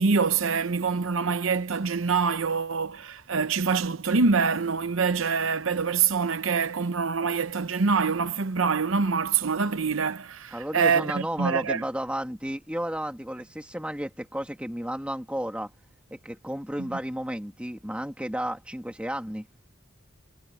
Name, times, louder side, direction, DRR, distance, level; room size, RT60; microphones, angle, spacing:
voice 1, 0.0-11.8 16.8-16.9, right 5 dB, 85° right, 0.8 m, -25 dB
voice 2, 10.5-15.7 16.1-19.5, equal, 5° right, 2.6 m, -32 dB
head